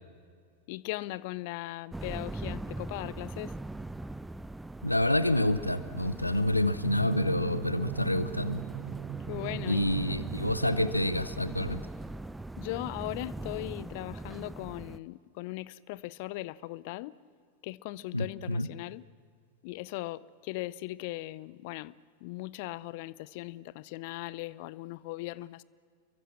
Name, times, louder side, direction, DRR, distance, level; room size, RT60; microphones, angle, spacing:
voice 1, 0.7-3.5 9.3-9.9 12.6-17.2 17.6-19.0 19.6-22.0 22.2-25.6, left 19 dB, 50° left, 0.6 m, -38 dB
sound 1, 1.9-15.0, right 2 dB, 5° right, 0.5 m, -41 dB
voice 2, 4.8-8.6 9.7-11.8 18.1-18.7, left 1 dB, 85° left, 0.7 m, -28 dB
Drum, 6.8-11.9, right 12 dB, 30° right, 1.2 m, -40 dB
29.5 x 23.0 x 6.2 m
figure-of-eight pair, 90°, 0 cm